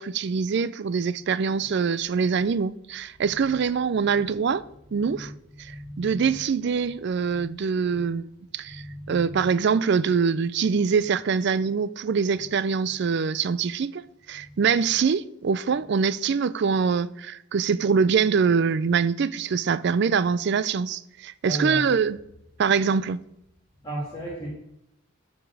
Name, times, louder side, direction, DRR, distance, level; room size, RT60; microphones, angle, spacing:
voice 1, 0.0-4.6 4.9-5.3 5.6-8.3 8.5-14.0 14.3-22.2 22.6-23.2, right 6 dB, 50° right, 0.4 m, -24 dB
voice 2, 5.6-6.2 7.3-7.5 8.6-9.4 21.4-21.8 23.8-24.5, right 1 dB, 20° left, 2.5 m, -34 dB
12.0 x 5.1 x 4.8 m
head